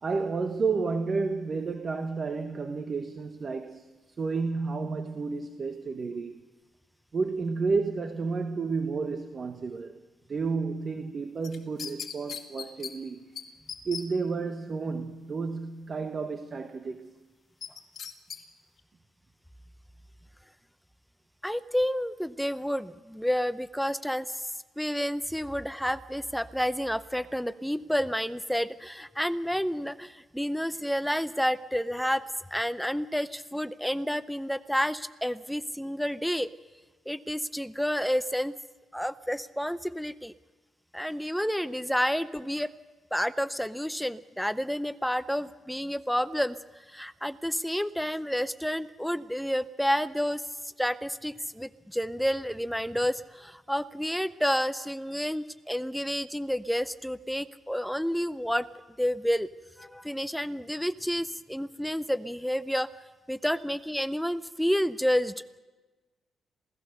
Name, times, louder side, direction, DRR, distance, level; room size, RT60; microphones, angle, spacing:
voice 1, 0.0-3.9 4.2-6.4 7.1-9.9 10.3-13.3 13.8-17.1, right 4 dB, 40° right, 8 dB, 1.3 m, -31 dB
sound 1, 11.4-12.9 13.4-13.5 13.7-14.0 17.6-18.4 18.8-18.9, left 7 dB, 55° left, 2.2 m, -38 dB
voice 2, 21.4-24.4 24.8-32.2 32.5-36.5 37.1-38.6 38.9-40.3 40.9-42.7 43.1-50.4 50.8-58.7 59.0-59.5 59.8-62.9 63.3-65.3, equal, ahead, 14 dB, 0.7 m, -30 dB
27.5 x 17.5 x 6.8 m, 1.3 s
cardioid pair, 90°, 0 cm